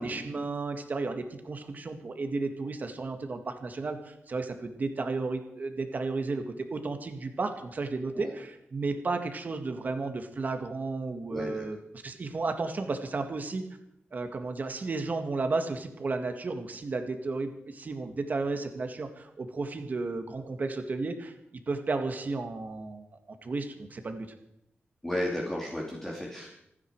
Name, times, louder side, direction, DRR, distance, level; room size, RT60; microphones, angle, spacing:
voice 1, 0.0-11.8 12.0-13.7 14.1-21.3 21.7-23.1 23.4-24.3, right 3 dB, 40° right, 6 dB, 1.9 m, -33 dB
voice 2, 11.3-11.7 25.0-26.5, left 1 dB, 10° left, -3 dB, 2.8 m, -34 dB
27.5 x 9.8 x 4.8 m, 0.80 s
wide cardioid pair, 140°, 4 cm